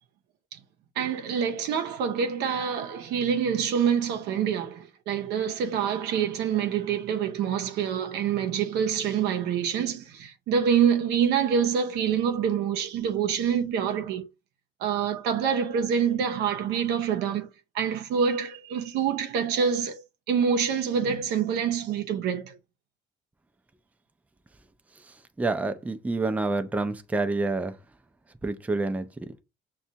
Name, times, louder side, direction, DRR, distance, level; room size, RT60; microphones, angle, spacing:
voice 1, 1.0-14.3 14.8-17.5 17.7-20.0 20.3-22.6, right 7 dB, 80° right, 0.6 m, -26 dB
voice 2, 25.4-27.7 28.4-29.1, right 3 dB, 10° right, 0.4 m, -27 dB
6.0 x 2.3 x 2.7 m
cardioid pair, 110°, 17 cm